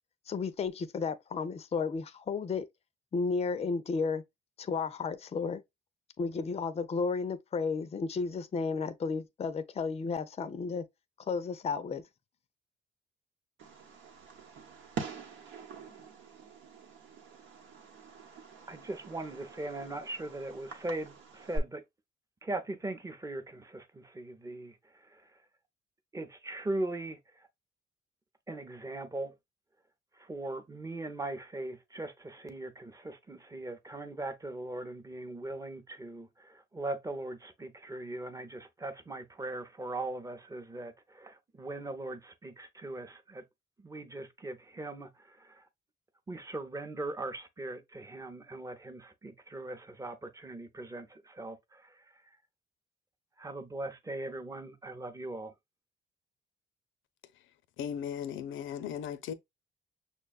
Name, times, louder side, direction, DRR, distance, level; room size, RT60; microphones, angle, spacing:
voice 1, 0.3-2.7 3.1-4.2 4.6-5.6 6.2-10.8 11.3-12.0, left 4 dB, 30° left, 0.5 m, -33 dB
Fireworks, 13.6-21.6, right 4 dB, 80° right, 1.0 m, -44 dB
voice 2, 18.7-21.8 22.4-24.8 25.1-25.2 26.1-27.2 28.5-29.3 30.2-43.4 43.8-45.6 46.3-52.0 53.4-55.5, right 2 dB, 15° right, 0.7 m, -40 dB
voice 3, 57.8-59.3, left 8 dB, 80° left, 0.6 m, -37 dB
6.1 x 2.2 x 2.3 m
cardioid pair, 90°, 20 cm